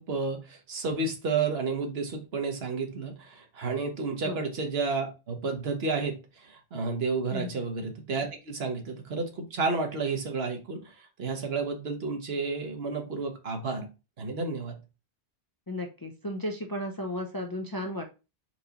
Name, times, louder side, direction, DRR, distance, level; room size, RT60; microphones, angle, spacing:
voice 1, 0.0-13.9 14.2-14.7, right 4 dB, 70° right, 4 dB, 1.2 m, -31 dB
voice 2, 15.7-18.0, left 1 dB, 30° left, 2 dB, 0.4 m, -34 dB
4.5 x 3.9 x 2.9 m, 0.29 s
omnidirectional pair, 1.1 m